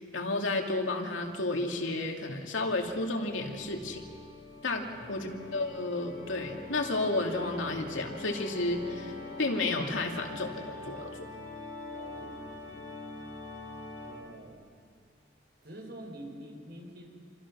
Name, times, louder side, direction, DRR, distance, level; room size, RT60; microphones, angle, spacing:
voice 1, 0.0-4.0 4.6-9.1 9.4-11.1, left 2 dB, 80° left, 2 dB, 2.5 m, -32 dB
Organ, 2.7-14.5, left 3 dB, 40° left, 3.8 m, -44 dB
voice 2, 4.6-5.2 11.9-12.9 14.0-14.6 15.6-17.1, right 1 dB, 60° right, 1 dB, 4.9 m, -47 dB
27.0 x 25.0 x 6.2 m, 2.2 s
head